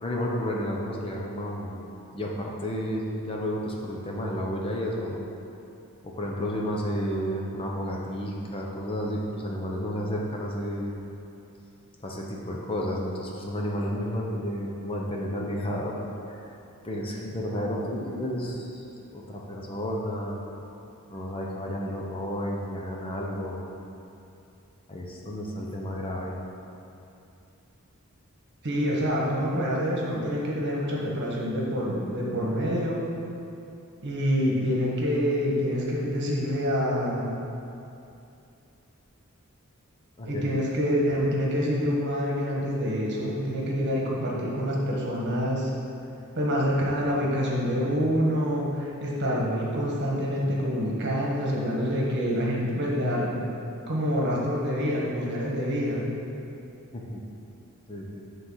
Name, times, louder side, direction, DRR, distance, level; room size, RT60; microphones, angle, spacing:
voice 1, 0.0-1.8 2.1-5.2 6.0-10.9 12.0-15.9 16.8-18.8 19.1-20.4 21.1-23.6 24.9-26.4 40.2-40.4 56.9-57.2 57.9-58.2, equal, 25° left, -2 dB, 0.7 m, -31 dB
voice 2, 28.6-33.1 34.0-37.3 40.2-45.7 46.3-53.4 53.9-56.1, equal, 50° right, -4 dB, 1.5 m, -26 dB
8.8 x 3.9 x 5.6 m, 2.7 s
head